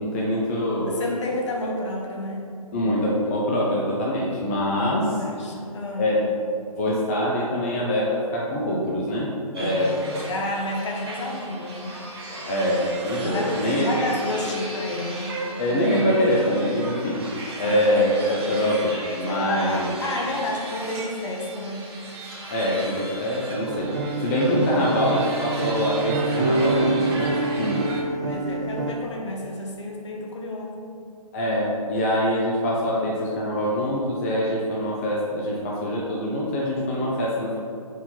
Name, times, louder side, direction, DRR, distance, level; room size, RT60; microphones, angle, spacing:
voice 1, 0.0-1.0 2.7-5.2 6.0-6.2 6.7-9.9 12.5-13.9 15.6-17.2 17.6-19.9 22.5-23.9 24.2-27.9 31.3-37.6, equal, 25° left, -5 dB, 0.6 m, -24 dB
voice 2, 0.9-2.5 4.5-4.8 5.2-6.1 9.6-12.0 13.2-15.4 17.6-17.8 19.2-21.8 28.2-30.9, left 2 dB, 50° left, 0 dB, 1.2 m, -30 dB
sound 1, 9.5-28.0, right 2 dB, 45° right, 1.2 m, -37 dB
sound 2, 23.7-28.9, right 2 dB, 30° right, 0.4 m, -26 dB
4.6 x 4.3 x 5.6 m, 2.4 s
hypercardioid pair, 160°, 19 cm